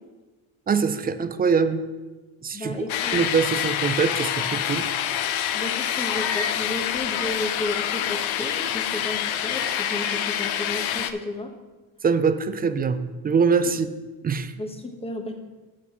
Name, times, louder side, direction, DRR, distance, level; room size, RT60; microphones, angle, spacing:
voice 1, 0.7-1.8 2.4-2.8 3.1-4.8 12.0-13.9 14.2-14.5, right 5 dB, 20° right, 11 dB, 0.3 m, -23 dB
voice 2, 2.5-3.1 5.5-11.5 14.5-15.3, left 2 dB, 10° left, 4 dB, 1.2 m, -33 dB
sound 1, 2.9-11.1, left 10 dB, 70° left, 0.8 m, -26 dB
12.0 x 8.0 x 3.0 m, 1.2 s
cardioid pair, 115°, 48 cm